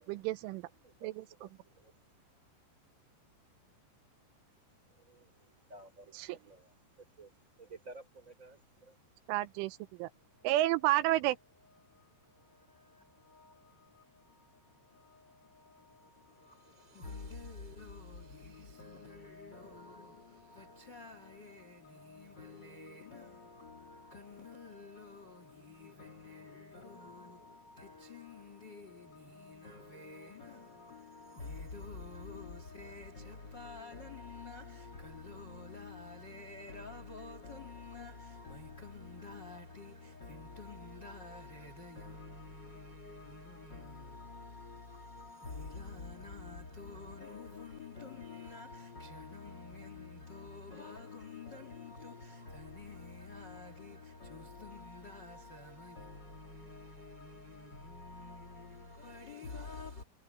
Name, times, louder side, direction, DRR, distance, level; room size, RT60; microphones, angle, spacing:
voice 1, 0.1-0.6 1.0-1.2 6.2-6.4 9.3-10.1 10.4-11.4, right 16 dB, 85° right, 3.2 m, -30 dB
voice 2, 0.8-2.0 4.9-7.3 7.6-9.0, right 2 dB, 15° right, 4.4 m, -55 dB
voice 3, 10.1-10.5 10.8-11.2 11.7-60.0, left 3 dB, 45° left, 1.5 m, -49 dB
omnidirectional pair, 5.7 m